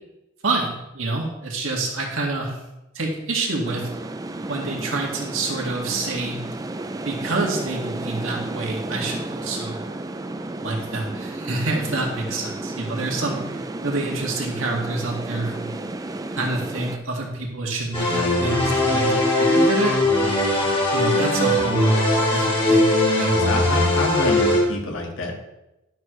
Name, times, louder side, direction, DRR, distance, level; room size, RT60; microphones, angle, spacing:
voice 1, 0.4-2.6 2.9-3.9 4.5-6.4 7.0-9.9 10.5-15.8 16.3-20.4 20.9-23.5, right 2 dB, 90° right, -1 dB, 2.1 m, -27 dB
sound 1, 3.6-17.0, right 2 dB, 20° right, 0.4 m, -32 dB
sound 2, 17.9-24.6, left 1 dB, 25° left, 1.9 m, -20 dB
voice 2, 23.4-25.4, left 2 dB, 80° left, 0 dB, 1.7 m, -27 dB
11.5 x 6.5 x 3.2 m, 0.93 s
head